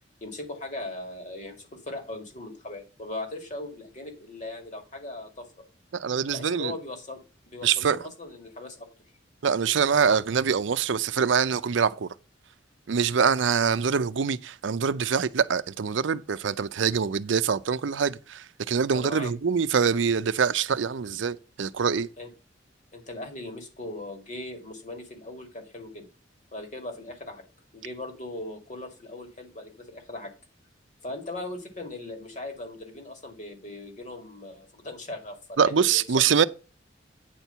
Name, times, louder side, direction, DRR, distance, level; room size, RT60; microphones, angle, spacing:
voice 1, 0.2-5.5 6.3-7.2 7.5-8.9 18.9-19.3 22.2-22.3 22.9-26.1 26.5-27.4 27.7-30.3 31.0-35.9 36.2-36.3, left 2 dB, 40° left, 2.2 m, -39 dB
voice 2, 5.9-6.7 7.6-8.0 9.4-12.1 12.9-22.1 35.6-36.4, right 6 dB, 75° right, 0.5 m, -24 dB
9.1 x 4.5 x 6.8 m
head